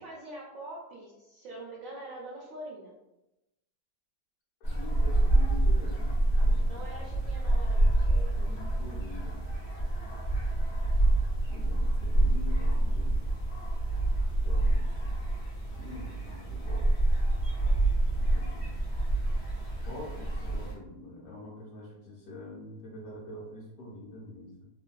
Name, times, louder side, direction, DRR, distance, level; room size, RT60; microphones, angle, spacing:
voice 1, 0.0-2.9 6.7-8.5, right 1 dB, 65° right, -5 dB, 0.9 m, -44 dB
voice 2, 4.6-6.2 6.4-6.8 8.3-9.4 11.5-13.2 14.4-14.9 15.8-16.8 18.1-18.8 19.8-24.7, left 1 dB, 80° left, -5 dB, 1.5 m, -45 dB
sound 1, 4.6-20.7, right 1 dB, 50° left, 1.0 m, -27 dB
3.2 x 2.6 x 2.2 m, 0.94 s
omnidirectional pair, 1.8 m